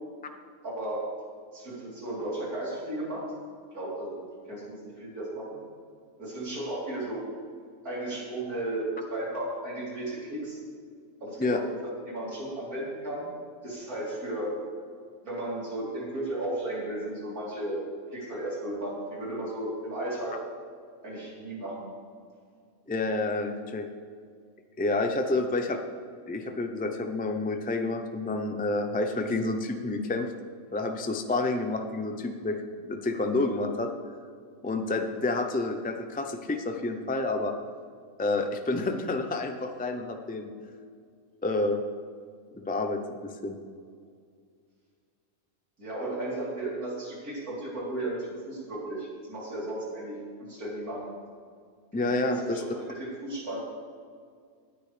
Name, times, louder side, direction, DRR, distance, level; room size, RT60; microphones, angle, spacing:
voice 1, 0.6-1.0 1.5-3.2 3.7-4.2 4.5-5.6 6.2-7.3 7.8-10.6 11.2-13.3 13.6-14.5 15.2-17.8 18.1-20.4 21.0-21.9 45.8-51.1 51.9-53.6, right 1 dB, 85° right, -6 dB, 4.2 m, -34 dB
voice 2, 22.9-23.8 24.8-25.8 26.3-30.3 30.7-32.6 32.9-33.9 34.6-37.5 38.2-40.5 41.4-41.8 42.5-43.6 51.9-52.6, left 2 dB, 15° left, 5 dB, 0.3 m, -29 dB
18.0 x 9.8 x 3.4 m, 2.1 s
omnidirectional pair, 1.5 m